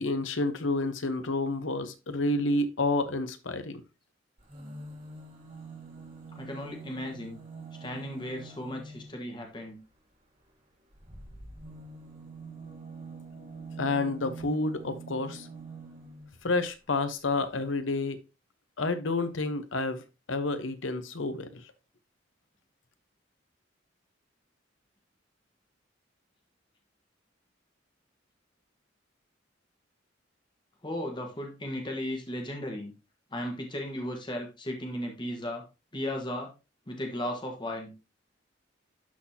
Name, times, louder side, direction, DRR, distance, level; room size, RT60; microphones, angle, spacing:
voice 1, 0.0-3.8 13.8-15.5 16.4-18.2 18.8-21.6, left 2 dB, 90° left, 1.0 m, -29 dB
sound 1, 4.4-9.2 10.9-16.4 17.3-17.4 17.6-17.7, right 3 dB, 40° right, 2.7 m, -45 dB
voice 2, 6.4-7.4 7.8-9.8 30.8-32.9 33.3-35.6 35.9-36.5 36.9-37.9, left 1 dB, 25° left, 1.5 m, -35 dB
12.0 x 4.1 x 2.8 m
head